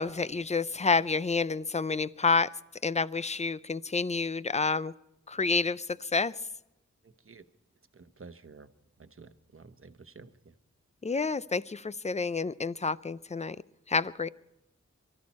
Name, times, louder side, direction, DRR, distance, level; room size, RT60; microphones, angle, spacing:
voice 1, 0.0-2.5 2.8-4.9 5.3-6.3 11.0-13.6 13.9-14.3, left 4 dB, 25° left, 0.5 m, -29 dB
voice 2, 7.9-8.7 9.0-10.3, right 4 dB, 45° right, 1.0 m, -50 dB
24.0 x 13.5 x 4.2 m
wide cardioid pair, 75°, 30 cm